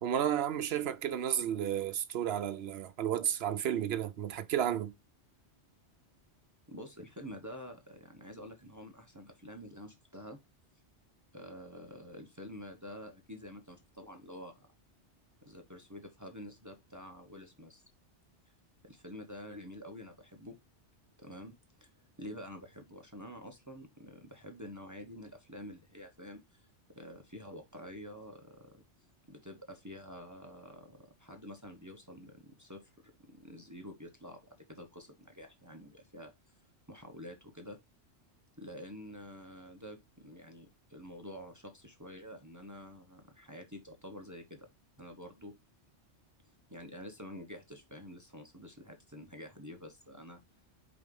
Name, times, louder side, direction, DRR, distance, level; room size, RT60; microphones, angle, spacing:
voice 1, 0.0-4.9, right 10 dB, 65° right, 0.9 m, -32 dB
voice 2, 6.7-10.4 11.3-14.7 15.4-17.8 18.8-20.6 21.2-26.7 26.9-28.7 29.3-32.9 33.3-36.3 36.9-37.8 38.6-44.7 45.0-45.5 46.7-50.4, equal, 15° right, 0.9 m, -48 dB
5.0 x 3.6 x 5.3 m
omnidirectional pair, 1.2 m